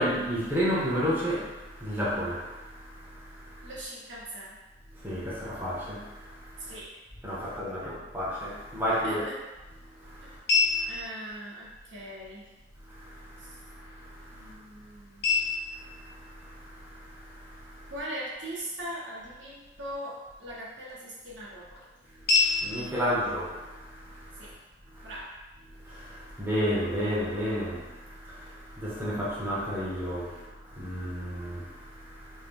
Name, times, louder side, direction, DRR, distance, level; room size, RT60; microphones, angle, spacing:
voice 1, 0.0-3.7 4.9-6.7 7.2-9.2 10.0-10.4 10.7-10.9 12.9-14.6 15.7-17.9 22.3-24.5 24.9-25.1 25.8-32.5, equal, 10° right, -8 dB, 0.7 m, -33 dB
voice 2, 3.6-4.6 6.7-6.9 7.4-7.9 9.0-9.3 10.9-12.4 13.4-13.5 14.3-15.4 17.9-21.8 24.4-24.5 25.0-25.3, right 1 dB, 80° right, -6 dB, 0.9 m, -40 dB
sound 1, 8.7-24.7, left 4 dB, 55° left, 0.5 m, -34 dB
2.7 x 2.0 x 3.3 m, 1.2 s
head